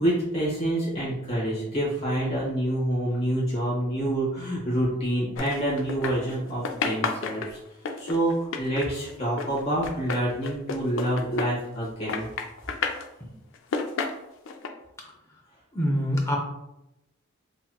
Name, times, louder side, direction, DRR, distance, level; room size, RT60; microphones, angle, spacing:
voice 1, 0.0-7.6 8.0-12.3, right 1 dB, 30° left, -7 dB, 1.3 m, -27 dB
sound 1, 5.4-6.4 6.6-11.8 12.1-13.1 13.5-14.7, left 4 dB, 60° left, 0.4 m, -31 dB
voice 2, 15.7-16.4, equal, 15° left, -1 dB, 0.6 m, -25 dB
5.5 x 2.9 x 2.3 m, 0.90 s
head